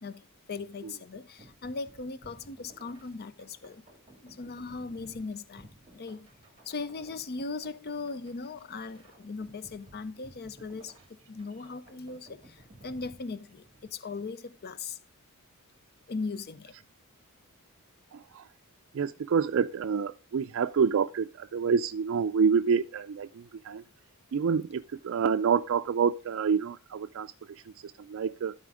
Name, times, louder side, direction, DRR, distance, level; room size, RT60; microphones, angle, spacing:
voice 1, 0.0-3.8 4.2-5.7 5.9-6.3 6.7-10.9 11.3-13.6 13.9-15.0 16.1-16.7, left 4 dB, 50° left, 0.6 m, -38 dB
sound 1, 1.4-13.9, right 1 dB, 25° right, 2.0 m, -56 dB
voice 2, 18.1-18.4 18.9-23.8 24.3-28.5, right 6 dB, 60° right, 0.4 m, -28 dB
12.5 x 4.3 x 4.9 m
head